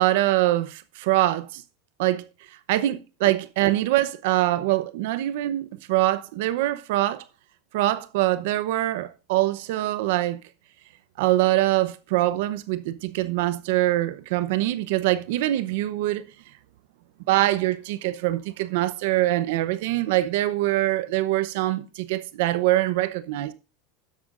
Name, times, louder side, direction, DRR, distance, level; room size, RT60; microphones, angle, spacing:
voice 1, 0.0-1.6 2.0-2.2 2.7-7.2 7.7-10.4 11.2-16.2 17.3-23.5, right 15 dB, 75° right, 0.8 m, -24 dB
12.0 x 10.5 x 2.6 m
supercardioid pair, 140°, 0 cm